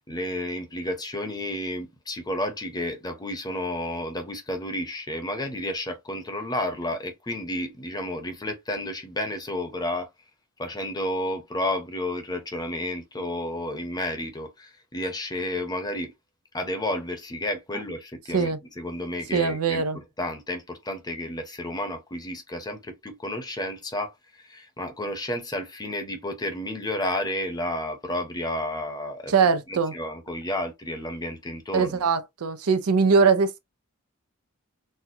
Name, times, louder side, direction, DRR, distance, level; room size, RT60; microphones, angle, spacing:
voice 1, 0.1-10.1 10.6-16.1 16.5-18.5 18.8-19.8 20.2-24.1 24.4-29.3 29.7-32.0, left 1 dB, 20° left, 0.8 m, -31 dB
voice 2, 19.3-20.0 29.3-29.9 31.7-33.6, right 5 dB, 85° right, 0.6 m, -21 dB
4.2 x 2.3 x 2.7 m
head